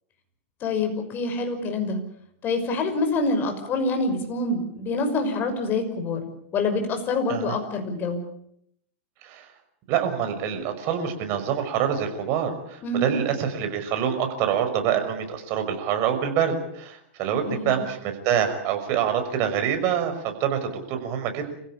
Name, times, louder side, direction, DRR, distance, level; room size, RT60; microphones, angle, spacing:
voice 1, 0.6-2.0 2.4-6.3 6.5-8.2 12.8-13.2 17.3-17.8, left 3 dB, 30° left, 5 dB, 6.0 m, -26 dB
voice 2, 9.9-21.5, right 8 dB, 45° right, 7 dB, 5.9 m, -26 dB
28.5 x 16.0 x 8.6 m, 0.74 s
hypercardioid pair, 130°, 7 cm